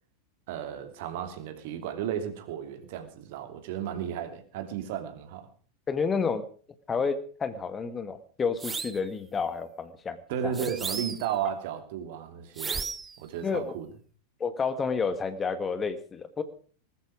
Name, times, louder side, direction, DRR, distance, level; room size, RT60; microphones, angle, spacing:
voice 1, 0.5-5.5 10.3-12.9 13.2-13.9, right 9 dB, 50° right, 3.1 m, -34 dB
voice 2, 5.9-6.4 6.9-10.2 10.4-10.5 13.4-13.7 14.4-16.4, left 5 dB, 20° left, 1.6 m, -30 dB
sound 1, 8.6-9.1 10.5-11.4 12.6-13.2, right 5 dB, 15° right, 0.8 m, -34 dB
20.5 x 13.5 x 4.9 m
figure-of-eight pair, 90°, 0 cm